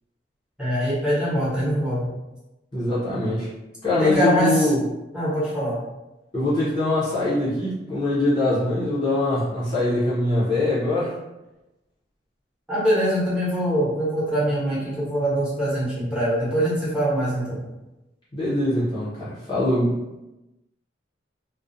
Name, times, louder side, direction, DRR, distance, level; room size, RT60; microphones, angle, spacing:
voice 1, 0.6-2.1 3.9-4.7 5.1-5.8 12.7-17.6, equal, 5° right, -10 dB, 1.0 m, -23 dB
voice 2, 2.7-3.5 3.8-4.8 6.3-11.1 18.3-20.0, left 1 dB, 25° left, -10 dB, 0.6 m, -23 dB
2.4 x 2.1 x 2.6 m, 1.0 s
head